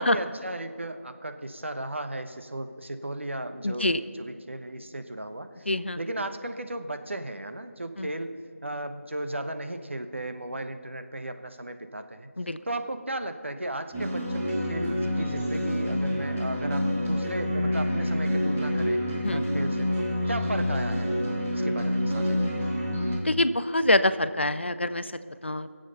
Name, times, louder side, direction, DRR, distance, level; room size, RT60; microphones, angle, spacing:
voice 1, 0.0-5.7 6.0-8.3 8.6-12.3 12.7-19.0 19.3-21.1 21.5-22.6, right 1 dB, 55° right, 8 dB, 1.0 m, -35 dB
voice 2, 3.6-4.0 5.7-6.0 8.0-8.1 12.4-12.6 19.2-19.4 23.2-25.1 25.4-25.7, left 1 dB, 50° left, 13 dB, 0.5 m, -25 dB
sound 1, 13.9-23.2, equal, 5° right, 0.7 m, -27 dB
22.5 x 7.9 x 5.6 m, 2.3 s
figure-of-eight pair, 170°, 8 cm